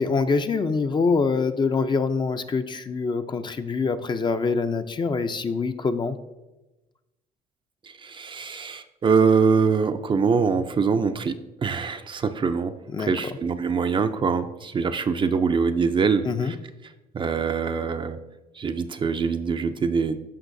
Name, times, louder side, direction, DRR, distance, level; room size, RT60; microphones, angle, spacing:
voice 1, 0.0-6.2 12.9-13.1 16.2-16.5, left 4 dB, 25° left, 9 dB, 0.5 m, -25 dB
voice 2, 7.8-12.8 13.1-16.6 17.1-18.2 18.6-20.2, right 5 dB, 30° right, 9 dB, 0.4 m, -24 dB
14.5 x 5.5 x 2.6 m, 1.0 s
cardioid pair, 110°, 17 cm